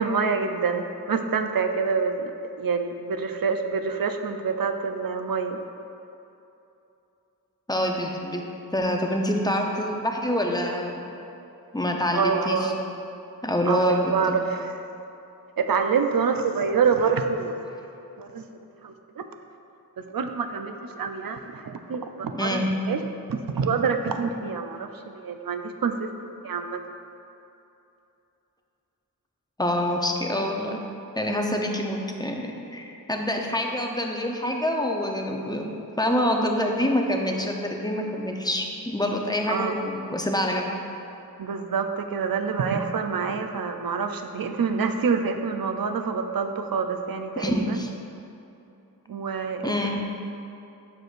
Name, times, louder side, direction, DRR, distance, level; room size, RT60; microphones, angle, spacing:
voice 1, 0.0-5.6 8.9-9.0 12.1-12.8 13.7-14.7 15.6-17.6 18.2-18.5 18.8-19.2 20.0-23.0 23.3-26.1 26.4-26.8 39.5-39.8 41.4-47.8 49.1-49.8, right 5 dB, 65° right, 6 dB, 0.5 m, -26 dB
voice 2, 7.7-8.4 8.7-11.0 11.7-12.7 13.4-14.4 22.4-22.7 29.6-30.8 31.1-40.7 47.4-47.9 49.6-50.0, left 1 dB, 10° left, 1 dB, 0.6 m, -26 dB
7.6 x 6.1 x 2.5 m, 2.9 s
wide cardioid pair, 55°, 37 cm